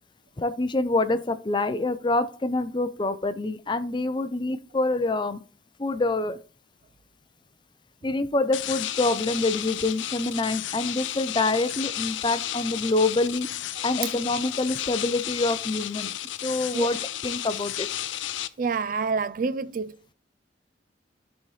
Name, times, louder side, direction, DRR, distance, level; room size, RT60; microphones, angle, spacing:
voice 1, 0.4-5.4 5.8-6.4 8.0-13.5 13.8-16.1 16.4-17.9, left 2 dB, 25° left, 0.5 m, -26 dB
sound 1, 8.5-18.5, left 12 dB, 80° left, 0.5 m, -33 dB
voice 2, 18.6-20.0, right 5 dB, 45° right, 0.3 m, -27 dB
12.0 x 4.1 x 3.2 m
head